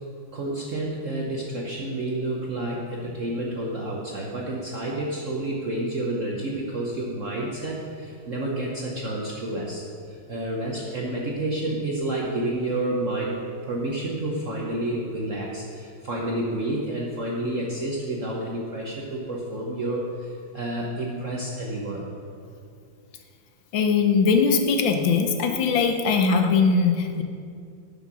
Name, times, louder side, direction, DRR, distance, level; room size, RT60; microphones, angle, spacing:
voice 1, 0.3-9.8 10.1-13.4 13.6-22.0, right 1 dB, 50° right, -3 dB, 1.1 m, -29 dB
voice 2, 23.7-27.2, left 5 dB, 80° left, 5 dB, 1.6 m, -21 dB
10.5 x 5.7 x 6.2 m, 2.4 s
omnidirectional pair, 2.1 m